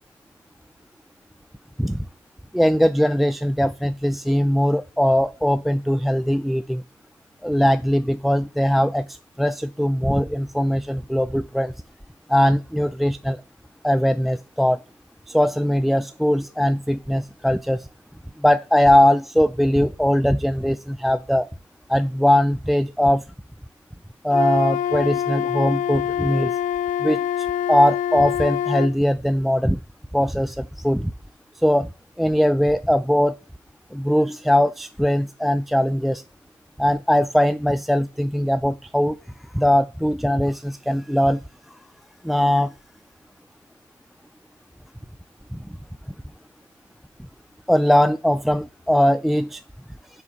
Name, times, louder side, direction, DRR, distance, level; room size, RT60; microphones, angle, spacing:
voice 1, 2.5-6.8 7.4-9.1 9.4-11.7 12.3-13.4 13.8-14.8 15.3-17.8 18.4-21.5 21.9-23.2 24.2-26.5 27.0-27.2 27.7-29.8 30.1-31.1 31.6-31.9 32.2-33.3 33.9-36.2 36.8-39.2 39.5-41.4 42.2-42.7 47.7-49.6, equal, ahead, 0.3 m, -20 dB
Wind instrument woodwind instrument, 24.3-28.9, left 10 dB, 85° left, 0.6 m, -25 dB
6.8 x 4.6 x 5.5 m
cardioid pair, 90°, 13 cm